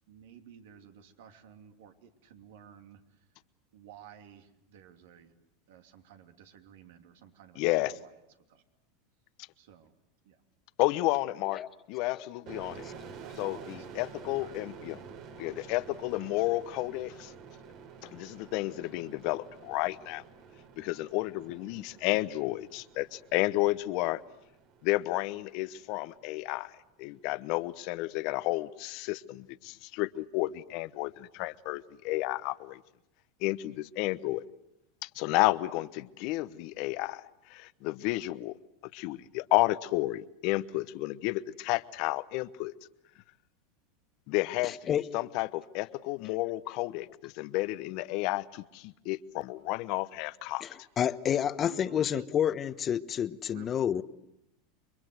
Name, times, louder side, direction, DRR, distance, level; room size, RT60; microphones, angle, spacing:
voice 1, 0.1-3.3 3.7-5.3 5.7-8.1 8.5-8.6 9.6-9.9 10.2-10.4 12.9-15.2 51.2-52.3 53.5-53.7, right 8 dB, 75° right, 2.9 m, -53 dB
voice 2, 7.6-7.9 10.8-11.6 11.9-12.8 13.4-15.0 15.4-17.3 18.0-20.2 20.8-24.2 24.8-26.7 27.0-32.8 33.4-34.4 35.0-38.5 38.9-42.7 44.3-50.6, left 19 dB, 60° left, 1.0 m, -31 dB
sound 1, 12.5-25.9, right 5 dB, 55° right, 3.6 m, -49 dB
voice 3, 44.6-45.1 50.6-50.7 51.0-54.0, left 9 dB, 35° left, 1.2 m, -29 dB
29.0 x 24.0 x 8.0 m
hypercardioid pair, 100°, 0 cm